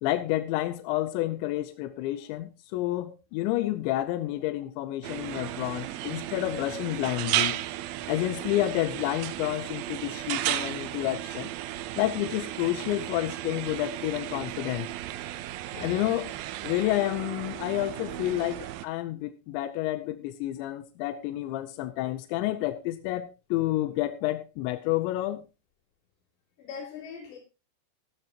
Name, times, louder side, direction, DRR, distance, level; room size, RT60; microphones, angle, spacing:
voice 1, 0.0-7.6 8.1-11.5 12.0-14.9 15.8-16.4 16.6-25.4, left 15 dB, 90° left, 11 dB, 3.0 m, -29 dB
sound 1, 5.0-18.8, right 14 dB, 80° right, 2.1 m, -34 dB
voice 2, 5.5-6.1 15.7-16.0 26.6-27.4, left 6 dB, 75° left, -5 dB, 5.6 m, -42 dB
13.5 x 12.0 x 2.9 m, 0.29 s
omnidirectional pair, 5.1 m